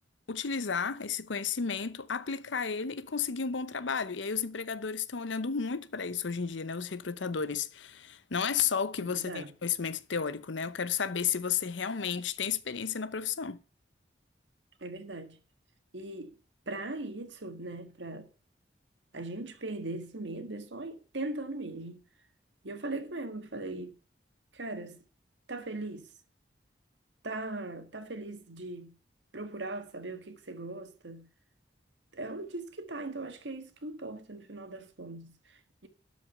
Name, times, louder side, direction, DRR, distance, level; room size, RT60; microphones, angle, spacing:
voice 1, 0.3-13.6, left 6 dB, 85° left, 0.8 m, -32 dB
voice 2, 9.0-9.5 14.8-15.4 15.9-16.4 16.7-18.3 19.1-22.0 22.6-23.9 24.5-25.0 25.5-26.1 27.2-28.9 29.3-31.3 32.1-35.9, right 2 dB, 75° right, 1.6 m, -39 dB
12.5 x 5.2 x 6.6 m
head